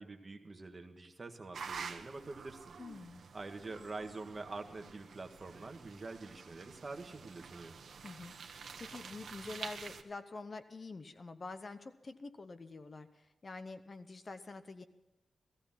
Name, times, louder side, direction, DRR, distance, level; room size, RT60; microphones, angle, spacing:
voice 1, 0.0-2.8 3.3-7.8, right 3 dB, 35° right, 5 dB, 1.5 m, -46 dB
sound 1, 1.5-10.0, right 6 dB, 80° right, 1.1 m, -49 dB
voice 2, 2.8-3.2 8.0-14.8, left 3 dB, 35° left, 10 dB, 0.8 m, -47 dB
17.0 x 14.5 x 5.8 m, 0.97 s
wide cardioid pair, 145°, 0 cm